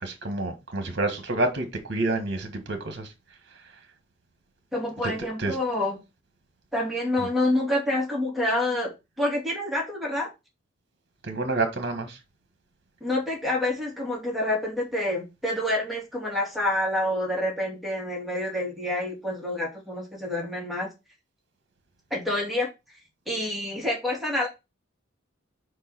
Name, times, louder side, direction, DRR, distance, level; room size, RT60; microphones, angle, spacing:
voice 1, 0.0-3.1 5.4-5.6 7.2-7.3 11.2-12.2, right 2 dB, 55° right, 1.3 m, -28 dB
voice 2, 4.7-6.0 6.7-10.3 13.0-20.9 22.1-22.7 23.3-24.5, left 1 dB, ahead, 2.7 m, -27 dB
4.9 x 4.6 x 5.9 m
head